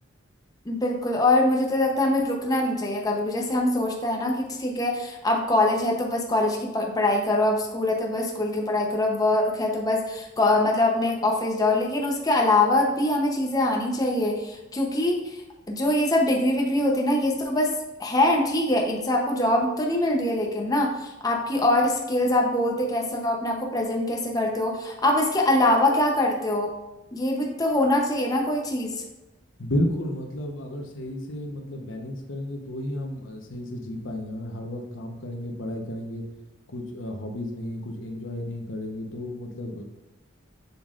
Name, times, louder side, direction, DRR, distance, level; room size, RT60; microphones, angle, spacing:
voice 1, 0.7-15.4 15.7-17.7 18.0-26.7 27.1-29.0, left 1 dB, 20° left, 0 dB, 0.8 m, -23 dB
voice 2, 29.6-36.2 36.7-39.8, left 1 dB, 75° left, 3 dB, 1.1 m, -32 dB
7.3 x 7.1 x 2.5 m, 1.0 s
head